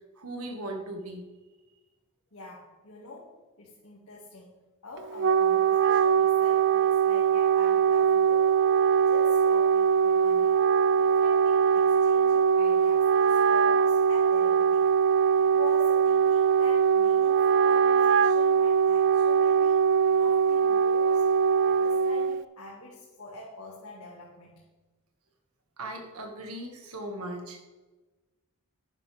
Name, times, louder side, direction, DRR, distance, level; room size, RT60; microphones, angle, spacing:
voice 1, 0.2-1.2 25.8-27.7, right 1 dB, 80° right, 3 dB, 1.9 m, -38 dB
voice 2, 2.3-8.6 9.1-10.6 11.0-14.9 15.4-21.3 21.6-24.6, left 3 dB, 75° left, -4 dB, 2.1 m, -45 dB
Wind instrument woodwind instrument, 5.0-22.4, right 7 dB, 55° right, 0.3 m, -22 dB
12.0 x 9.6 x 3.5 m, 1.2 s
head